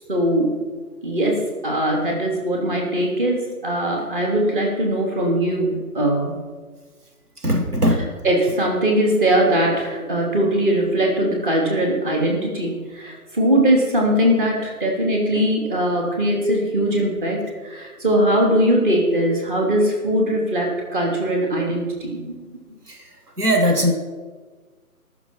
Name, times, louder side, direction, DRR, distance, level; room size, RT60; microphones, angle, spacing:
voice 1, 0.1-0.5 1.0-6.4 8.2-22.4, right 1 dB, 35° right, -1 dB, 3.0 m, -20 dB
voice 2, 7.4-8.2 22.9-23.1 23.4-23.9, equal, 90° right, 4 dB, 1.7 m, -20 dB
20.5 x 6.9 x 4.4 m, 1.4 s
figure-of-eight pair, 150°, 45 cm